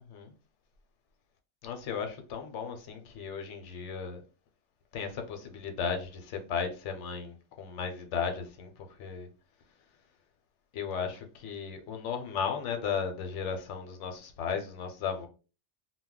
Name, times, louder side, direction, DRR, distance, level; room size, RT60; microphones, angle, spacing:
voice 1, 1.6-4.2 4.9-9.3 10.7-15.3, left 6 dB, 80° left, 0.9 m, -35 dB
2.2 x 2.1 x 3.6 m
omnidirectional pair, 1.2 m